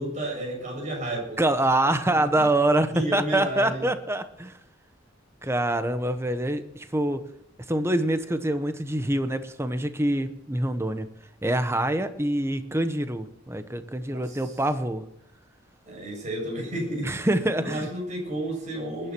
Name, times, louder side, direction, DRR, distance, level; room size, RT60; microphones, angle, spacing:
voice 1, 0.0-1.4 2.0-2.4 2.9-3.9 14.1-14.4 15.9-17.1 17.6-19.1, right 1 dB, 35° right, 0 dB, 7.4 m, -32 dB
voice 2, 1.4-4.5 5.4-7.2 7.7-11.1 11.4-15.0 17.0-17.9, right 1 dB, 15° right, 10 dB, 1.0 m, -25 dB
20.5 x 10.0 x 6.1 m, 0.75 s
head